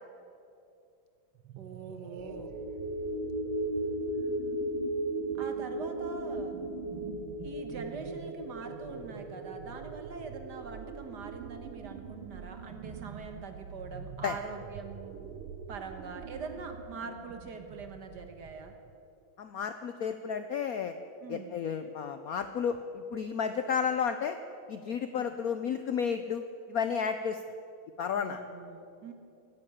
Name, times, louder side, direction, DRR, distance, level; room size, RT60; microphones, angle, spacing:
sound 1, 1.4-18.9, right 7 dB, 90° right, 1.7 m, -45 dB
voice 1, 1.6-2.5 5.4-6.6 7.4-15.2 15.7-18.7 21.2-21.5 25.2-25.3 28.1-29.1, right 4 dB, 60° right, 6 dB, 1.8 m, -43 dB
sound 2, 2.2-12.8 13.1-13.3, right 1 dB, 10° left, 2.8 m, -36 dB
voice 2, 19.4-20.9 21.3-24.4 24.7-26.4 26.7-27.4 28.0-28.4, left 7 dB, 70° left, 9 dB, 0.8 m, -32 dB
16.5 x 9.9 x 8.7 m, 2.6 s
omnidirectional pair, 2.2 m